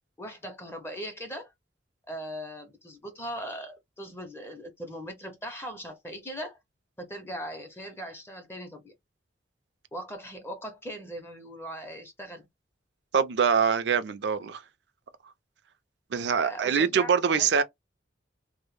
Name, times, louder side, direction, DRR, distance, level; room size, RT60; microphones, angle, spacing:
voice 1, 0.2-1.5 2.1-6.6 7.0-8.9 9.9-12.5 16.4-17.6, equal, 15° left, 0.5 m, -39 dB
voice 2, 13.1-14.6 16.1-17.6, right 6 dB, 70° right, 0.4 m, -24 dB
2.0 x 2.0 x 3.0 m
head